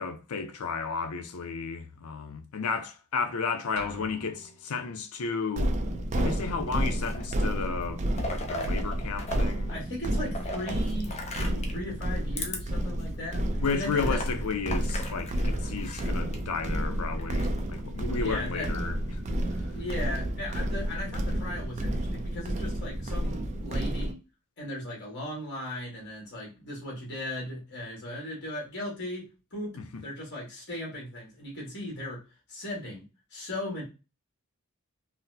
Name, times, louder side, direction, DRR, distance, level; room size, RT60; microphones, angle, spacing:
voice 1, 0.0-5.7 6.1-8.0 8.3-9.7 13.6-19.4 29.8-30.0, left 5 dB, 85° left, 0.5 m, -33 dB
sound 1, 3.8-5.2, right 1 dB, 85° right, 0.6 m, -46 dB
sound 2, 5.6-24.1, right 1 dB, 30° right, 0.4 m, -31 dB
sound 3, 6.8-7.4 7.8-9.4 9.7-11.8 12.3-12.6 13.0-13.1 13.6-16.4 17.2-17.8, left 2 dB, 30° left, 0.5 m, -38 dB
voice 2, 9.7-13.4 13.7-14.2 18.2-18.7 19.7-24.2 24.6-32.2 32.5-33.0 33.3-33.8, left 1 dB, 50° left, 1.5 m, -37 dB
4.0 x 2.0 x 2.6 m
head